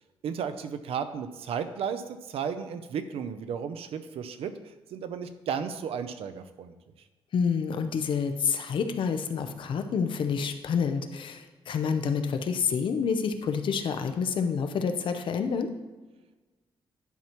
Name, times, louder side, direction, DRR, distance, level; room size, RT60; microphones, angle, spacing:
voice 1, 0.2-4.5 4.9-6.7, right 7 dB, 90° right, 10 dB, 0.6 m, -34 dB
voice 2, 7.3-15.7, left 6 dB, 60° left, 7 dB, 0.7 m, -28 dB
10.5 x 5.7 x 3.0 m, 1.2 s
wide cardioid pair, 160°, 10 cm